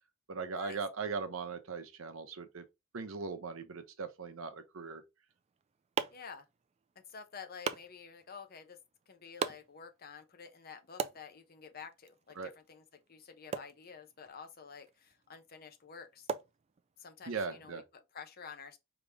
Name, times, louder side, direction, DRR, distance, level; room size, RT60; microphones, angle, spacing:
voice 1, 0.3-2.6 2.9-5.0 12.4-12.5 17.3-17.8, right 5 dB, 70° right, 0.8 m, -39 dB
sound 1, 5.3-17.2, right 6 dB, 30° right, 0.3 m, -44 dB
voice 2, 6.1-6.5 7.1-8.8 9.1-12.8 13.1-16.3 17.0-18.8, left 6 dB, 45° left, 0.8 m, -50 dB
5.1 x 2.9 x 3.5 m
head